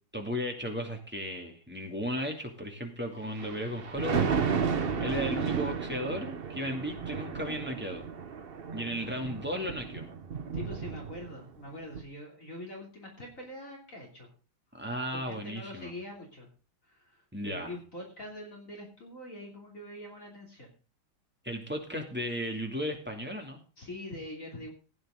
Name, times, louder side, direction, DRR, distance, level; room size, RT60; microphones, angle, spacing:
voice 1, 0.1-4.3 5.0-8.1 8.7-10.1 14.7-15.9 17.3-17.7 21.4-23.6, equal, 5° right, 1 dB, 2.4 m, -35 dB
Thunder, 3.2-11.5 11.9-12.0, right 6 dB, 45° right, 0.8 m, -33 dB
voice 2, 10.5-14.3 15.1-16.5 16.8-20.7 23.8-24.7, left 1 dB, 40° left, 0 dB, 3.3 m, -44 dB
16.0 x 9.5 x 3.8 m, 0.34 s
omnidirectional pair, 2.2 m